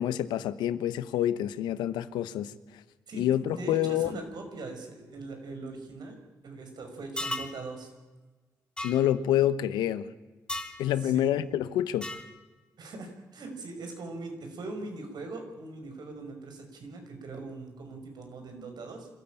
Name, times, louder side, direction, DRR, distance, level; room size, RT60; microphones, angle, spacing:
voice 1, 0.0-2.5 3.2-4.1 8.8-10.1 10.8-12.1, left 11 dB, 90° left, 1.0 m, -27 dB
voice 2, 3.1-6.2 6.4-7.9 11.0-11.3 12.8-19.1, right 2 dB, 70° right, 5.6 m, -41 dB
sound 1, 7.2-7.6 8.8-9.0 10.5-10.8 12.0-12.3, left 1 dB, 10° left, 3.8 m, -34 dB
26.5 x 14.0 x 9.1 m
supercardioid pair, 45°, 7 cm